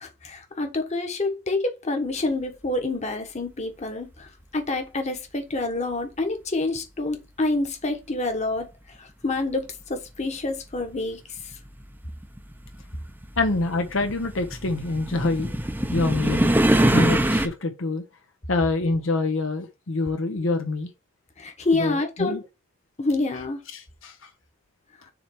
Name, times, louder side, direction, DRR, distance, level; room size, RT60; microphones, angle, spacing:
voice 1, 0.0-4.3 4.5-8.7 9.0-11.2 21.4-22.4 23.0-23.6, left 2 dB, 35° left, 1.3 m, -27 dB
sound 1, 10.2-10.3 11.4-17.5, right 1 dB, 10° right, 0.6 m, -24 dB
voice 2, 13.4-15.5 15.9-16.5 16.9-18.0 18.5-20.9 21.7-22.4 23.7-24.3, left 2 dB, 70° left, 0.8 m, -26 dB
7.2 x 3.3 x 4.7 m
head